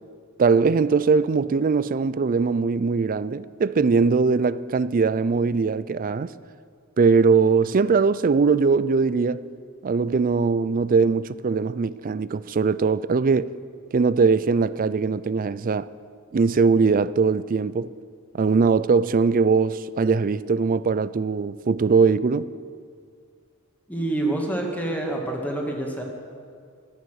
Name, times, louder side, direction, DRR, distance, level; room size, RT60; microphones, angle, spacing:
voice 1, 0.4-6.3 7.0-9.4 9.8-13.5 13.9-15.9 16.3-17.9 18.3-22.5, right 4 dB, 40° right, 0.4 m, -21 dB
voice 2, 23.9-26.0, right 2 dB, 5° left, 2.0 m, -27 dB
15.5 x 12.0 x 6.4 m
head